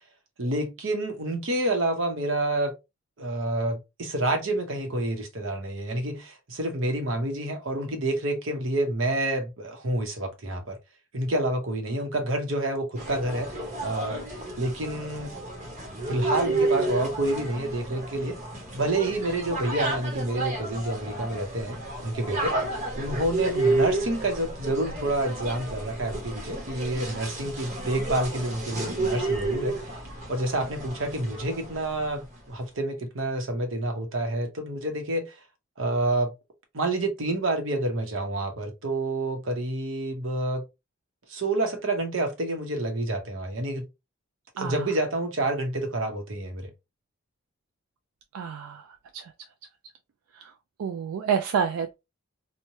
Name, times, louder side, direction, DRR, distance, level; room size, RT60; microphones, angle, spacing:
voice 1, 0.4-2.7 3.2-10.8 11.1-13.6 13.8-14.2 14.6-15.3 16.1-18.4 18.7-22.6 23.0-30.0 30.3-35.4 35.8-36.3 36.7-40.6 41.3-43.9 44.5-46.7, right 1 dB, 70° right, 0.8 m, -28 dB
sound 1, 12.9-32.2, right 2 dB, 35° right, 0.9 m, -31 dB
voice 2, 48.3-48.9 49.1-49.3 50.4-50.5 50.8-52.0, right 7 dB, 90° right, 0.3 m, -28 dB
3.1 x 2.2 x 2.6 m
head